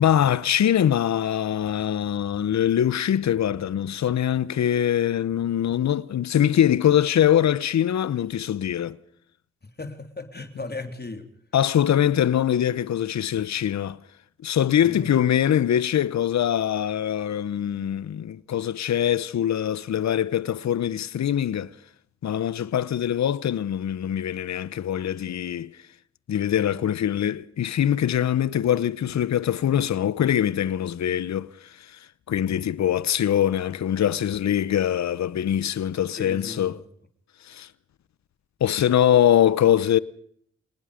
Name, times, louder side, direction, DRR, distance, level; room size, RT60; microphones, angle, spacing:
voice 1, 0.0-9.0 11.5-14.0 14.4-21.7 22.2-25.8 26.3-31.5 32.3-36.8 37.5-37.7 38.6-40.0, left 10 dB, 65° left, 1.0 m, -23 dB
voice 2, 9.6-11.3 14.8-15.1 36.2-36.8, left 3 dB, 35° left, 3.6 m, -37 dB
27.5 x 19.5 x 5.2 m
supercardioid pair, 40°, 29 cm